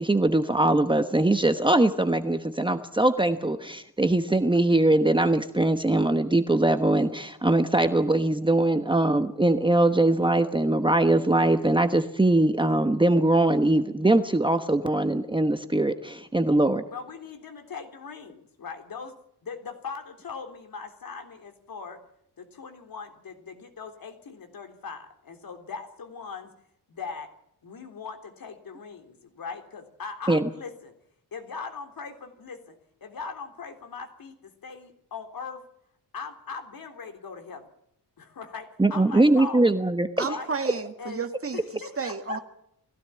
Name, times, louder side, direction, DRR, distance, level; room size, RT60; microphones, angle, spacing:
voice 1, 0.0-16.8 30.3-30.5 38.8-40.3, right 2 dB, 10° right, 8 dB, 1.1 m, -22 dB
voice 2, 16.9-19.1 19.4-22.0 22.4-26.5 26.9-27.3 27.6-30.9 31.3-35.6 36.1-37.6 38.2-39.7 40.2-40.5 41.0-41.2 41.8-42.4, left 5 dB, 60° left, 6 dB, 3.6 m, -40 dB
voice 3, 40.2-42.4, right 5 dB, 35° right, 7 dB, 2.0 m, -32 dB
21.5 x 17.0 x 8.8 m, 0.73 s
wide cardioid pair, 150°, 39 cm